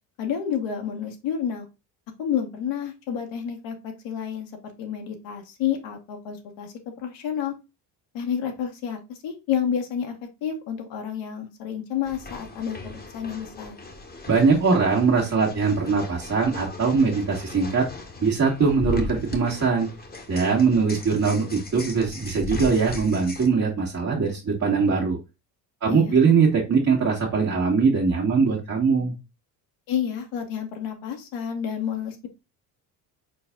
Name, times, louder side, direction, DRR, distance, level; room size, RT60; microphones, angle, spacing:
voice 1, 0.2-1.7 2.2-4.5 4.8-7.5 8.1-10.2 10.4-13.8 25.9-26.1 29.9-32.3, left 8 dB, 65° left, 3 dB, 1.2 m, -30 dB
sound 1, 12.0-23.5, left 3 dB, 20° left, 1.2 m, -38 dB
voice 2, 14.3-17.9 18.2-19.9 20.3-25.2 25.8-29.1, right 5 dB, 35° right, -4 dB, 1.7 m, -21 dB
4.6 x 4.1 x 2.3 m, 0.26 s
hypercardioid pair, 65°, 48 cm